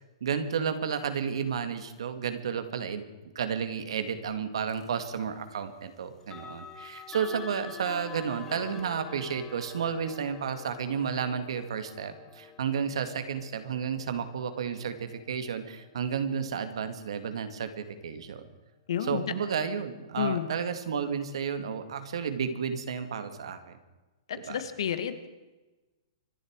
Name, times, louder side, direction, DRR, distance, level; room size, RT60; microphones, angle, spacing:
voice 1, 0.2-3.0 3.4-18.5 19.0-23.8 24.5-24.6, right 7 dB, 75° right, 9 dB, 2.2 m, -32 dB
sound 1, 4.7-4.9 6.2-17.1, left 7 dB, 15° left, 1.2 m, -48 dB
voice 2, 18.9-19.2 20.2-20.5 24.3-25.3, left 9 dB, 70° left, 10 dB, 1.9 m, -30 dB
25.5 x 11.5 x 4.8 m, 1.1 s
hypercardioid pair, 160°, 3 cm